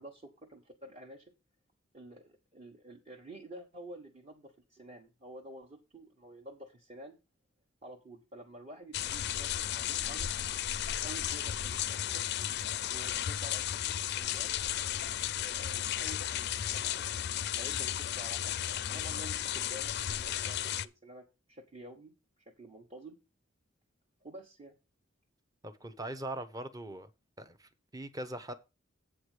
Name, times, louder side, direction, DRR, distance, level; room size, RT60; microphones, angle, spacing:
voice 1, 0.0-1.3 1.9-7.2 7.8-10.3 10.9-12.3 12.9-14.5 15.3-17.2 17.6-22.1 22.5-23.2 24.2-24.7, right 1 dB, 35° right, 1.3 m, -50 dB
sound 1, 8.9-20.9, left 11 dB, 55° left, 0.4 m, -34 dB
voice 2, 25.6-27.1 27.4-28.5, right 1 dB, 20° right, 0.9 m, -41 dB
8.2 x 4.9 x 6.5 m
head